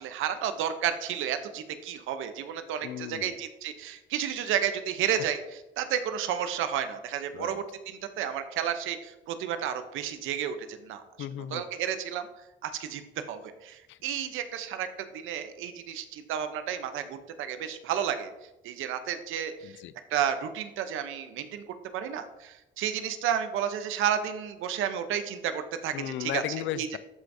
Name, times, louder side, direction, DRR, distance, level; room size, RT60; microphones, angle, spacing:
voice 1, 0.0-5.4 5.8-11.0 11.5-12.3 12.6-13.0 13.3-14.9 15.1-18.3 18.6-19.7 20.1-21.6 21.9-26.4 26.7-26.9, right 9 dB, 90° right, 9 dB, 0.7 m, -31 dB
voice 2, 2.8-3.3 7.3-7.6 11.2-11.6 13.9-14.0 19.6-19.9 25.9-27.0, left 12 dB, 75° left, 15 dB, 0.4 m, -35 dB
13.0 x 4.7 x 2.7 m, 0.97 s
cardioid pair, 90°, 20 cm